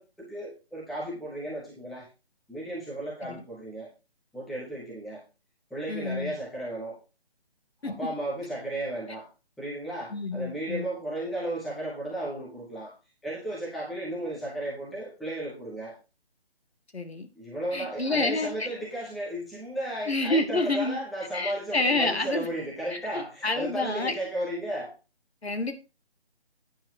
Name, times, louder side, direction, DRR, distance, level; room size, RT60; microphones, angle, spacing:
voice 1, 0.0-2.1 2.5-3.9 4.3-5.2 5.7-7.0 7.8-9.3 9.6-12.9 13.2-15.9 17.4-24.9, right 1 dB, ahead, -6 dB, 0.6 m, -34 dB
voice 2, 5.9-6.3 7.8-7.9 10.1-10.9 16.9-17.3 17.7-18.7 20.1-21.0 21.3-22.5 22.9-24.1 25.4-25.7, left 2 dB, 80° left, 6 dB, 2.8 m, -28 dB
11.0 x 9.3 x 2.8 m, 0.29 s
figure-of-eight pair, 155°, 31 cm